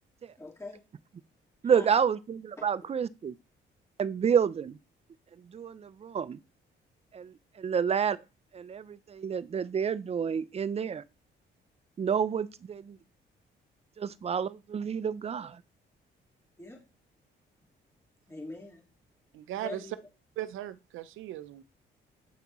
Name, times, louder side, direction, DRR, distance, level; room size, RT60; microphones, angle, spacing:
voice 1, 0.4-0.8 1.6-1.9 2.6-2.7 16.6-16.8 18.3-18.8 19.6-20.1, left 3 dB, 15° left, 2.0 m, -43 dB
voice 2, 1.6-3.3 4.0-4.8 5.4-6.4 7.1-8.2 8.5-11.0 12.0-13.0 14.0-15.6, right 7 dB, 30° right, 0.5 m, -29 dB
voice 3, 19.3-19.8 20.4-21.6, right 13 dB, 85° right, 0.6 m, -38 dB
8.2 x 5.7 x 3.1 m
cardioid pair, 90°, 20 cm